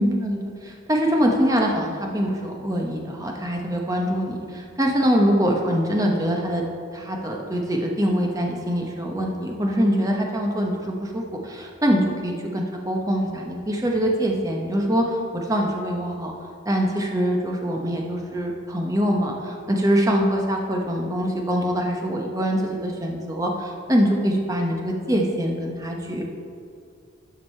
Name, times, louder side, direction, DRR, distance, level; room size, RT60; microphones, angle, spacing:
voice 1, 0.0-6.6 6.9-16.3 16.6-26.2, equal, 15° right, 0 dB, 0.9 m, -24 dB
12.0 x 5.1 x 4.4 m, 2.4 s
head